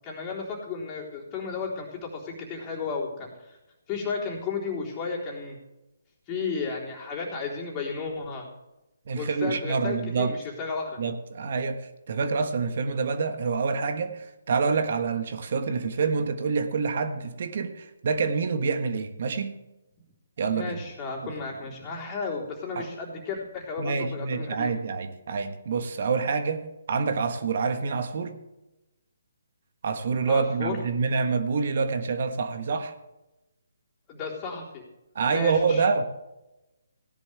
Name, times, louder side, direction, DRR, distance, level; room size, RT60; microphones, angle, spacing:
voice 1, 0.0-3.3 3.9-5.6 6.3-8.5 9.2-11.0 20.5-24.7 30.3-30.8 34.1-34.8 35.3-35.8, left 4 dB, 20° left, -3 dB, 3.9 m, -33 dB
voice 2, 9.1-10.4 11.0-19.6 20.4-20.8 21.2-21.3 22.7-22.9 23.8-26.6 26.9-28.4 29.8-32.9 35.1-36.0, right 5 dB, 55° right, 8 dB, 1.4 m, -27 dB
16.5 x 10.5 x 3.5 m, 0.97 s
figure-of-eight pair, 145°, 0 cm